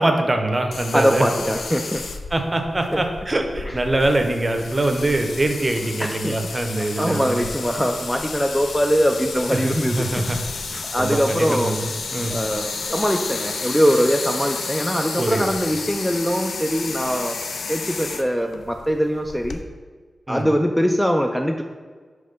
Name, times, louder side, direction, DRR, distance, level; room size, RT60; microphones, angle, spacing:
voice 1, 0.0-1.3 2.3-7.4 9.5-10.4 10.7-12.3 15.2-15.5 20.3-20.4, right 2 dB, 30° right, 5 dB, 0.7 m, -23 dB
sound 1, 0.7-19.6, left 4 dB, 90° left, 0.4 m, -32 dB
voice 2, 0.9-2.1 2.9-3.0 3.7-3.8 6.0-10.4 10.8-11.8 12.3-17.4 17.7-19.6 20.3-21.6, equal, ahead, 4 dB, 0.3 m, -22 dB
5.7 x 3.1 x 5.3 m, 1.5 s
wide cardioid pair, 75°, 0 cm